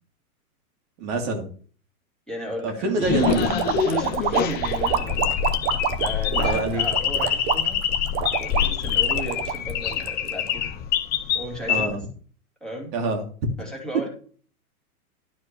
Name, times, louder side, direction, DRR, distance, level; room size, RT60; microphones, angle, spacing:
voice 1, 1.0-1.5 2.6-3.5 6.3-6.9 11.7-12.0 12.9-13.2, right 2 dB, 45° right, 3 dB, 2.3 m, -26 dB
voice 2, 2.3-3.1 3.8-5.3 6.0-7.8 8.3-10.8 11.3-12.0 12.6-12.9 13.6-14.1, equal, ahead, -3 dB, 2.7 m, -35 dB
sound 1, 3.0-11.9, left 10 dB, 20° left, 0.9 m, -25 dB
sound 2, 3.2-10.5, right 8 dB, 25° right, 0.8 m, -27 dB
12.0 x 4.4 x 6.8 m, 0.43 s
hypercardioid pair, 145°, 44 cm